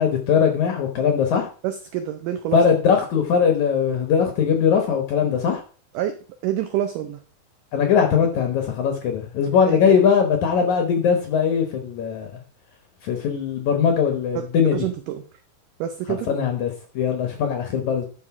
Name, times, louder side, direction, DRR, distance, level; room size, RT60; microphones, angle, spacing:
voice 1, 0.0-1.5 2.5-5.6 7.7-12.4 13.0-14.8 16.1-18.1, left 7 dB, 70° left, 5 dB, 1.9 m, -20 dB
voice 2, 1.6-2.6 5.9-6.2 6.4-7.2 9.7-9.8 14.4-15.2 15.8-16.3, right 11 dB, 85° right, 8 dB, 1.8 m, -27 dB
11.5 x 4.4 x 4.7 m, 0.40 s
omnidirectional pair, 4.5 m